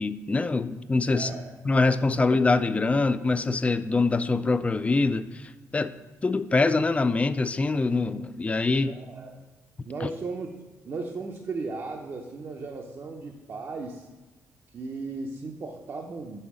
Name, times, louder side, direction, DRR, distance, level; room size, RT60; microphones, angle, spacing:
voice 1, 0.0-1.3 1.6-5.4 5.7-5.9 6.2-8.9, left 3 dB, 20° left, 13 dB, 0.3 m, -24 dB
voice 2, 1.1-1.6 8.8-9.4 9.8-10.5 10.8-14.1 14.7-16.4, right 3 dB, 45° right, 1 dB, 0.6 m, -36 dB
5.6 x 3.9 x 6.1 m, 1.2 s
cardioid pair, 85°, 6 cm